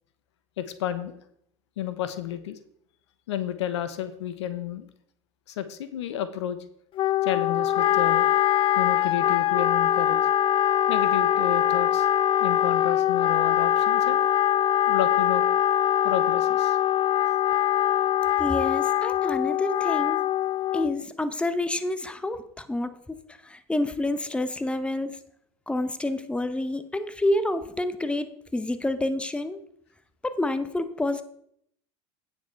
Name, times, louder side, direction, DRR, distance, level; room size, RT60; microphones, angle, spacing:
voice 1, 0.6-1.2 1.8-2.6 3.3-4.9 5.5-6.6 7.2-8.3 8.8-10.2 10.9-12.1 12.4-14.2 14.9-15.4 16.0-16.8, left 10 dB, 85° left, 12 dB, 0.9 m, -31 dB
Wind instrument woodwind instrument, 7.0-21.0, left 11 dB, 40° left, 0.4 m, -23 dB
voice 2, 18.4-20.2 20.7-25.2 25.7-29.6 30.2-31.2, left 1 dB, 10° left, 12 dB, 0.9 m, -28 dB
9.3 x 7.1 x 4.5 m, 0.70 s
hypercardioid pair, 90°, 14 cm